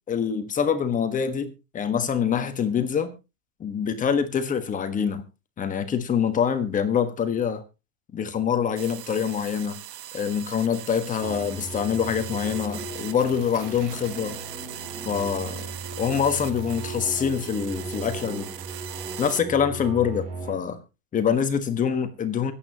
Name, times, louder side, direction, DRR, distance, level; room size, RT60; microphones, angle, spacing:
voice 1, 0.1-3.1 3.6-5.2 5.6-7.6 8.1-9.8 10.1-14.4 15.0-15.7 16.0-18.5 19.2-20.8 21.1-22.5, left 7 dB, 15° left, 1.4 m, -25 dB
sound 1, 8.8-19.4, right 12 dB, 85° right, 1.4 m, -40 dB
sound 2, 11.2-20.5, right 3 dB, 15° right, 3.1 m, -37 dB
24.0 x 8.8 x 2.9 m
supercardioid pair, 150°, 47 cm